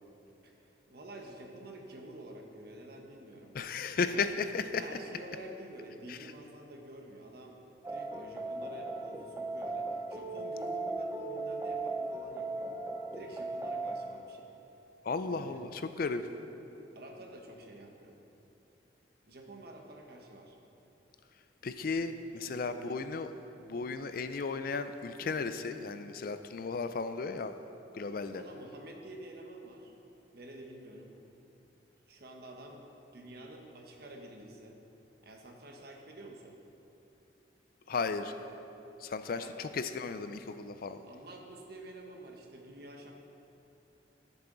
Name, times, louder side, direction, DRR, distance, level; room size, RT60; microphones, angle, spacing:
voice 1, 0.4-3.5 4.0-4.3 4.8-7.6 7.9-12.8 13.1-14.5 15.3-15.6 16.9-18.2 19.2-20.6 22.3-22.8 28.3-29.9 30.3-31.1 32.1-32.8 33.1-34.8 35.2-36.6 39.3-39.6 41.0-43.1, right 1 dB, 55° right, 1 dB, 1.2 m, -49 dB
voice 2, 3.5-4.8 6.1-6.3 15.0-16.3 21.6-23.3 23.6-27.5 27.9-28.4 37.9-38.3 39.0-41.0, left 4 dB, 50° left, 10 dB, 0.4 m, -35 dB
sound 1, 7.8-14.6, right 2 dB, 15° right, 0.6 m, -37 dB
14.5 x 6.9 x 3.9 m, 3.0 s
head